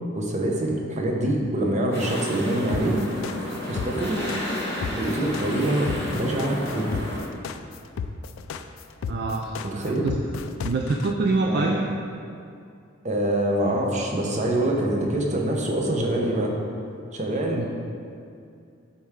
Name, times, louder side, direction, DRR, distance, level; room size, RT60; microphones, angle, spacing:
voice 1, 0.1-3.0 3.7-4.2 5.0-7.0 9.6-10.1 11.5-11.7 13.0-16.6 17.1-17.7, right 1 dB, 35° right, -1 dB, 0.8 m, -25 dB
sound 1, 1.9-7.2, left 1 dB, 10° left, 1.4 m, -31 dB
sound 2, 2.7-11.1, left 6 dB, 75° left, 0.3 m, -33 dB
voice 2, 9.1-9.6 9.8-10.2 10.6-11.8 17.5-17.7, right 3 dB, 50° right, 1 dB, 0.4 m, -25 dB
8.1 x 4.3 x 3.6 m, 2.5 s
head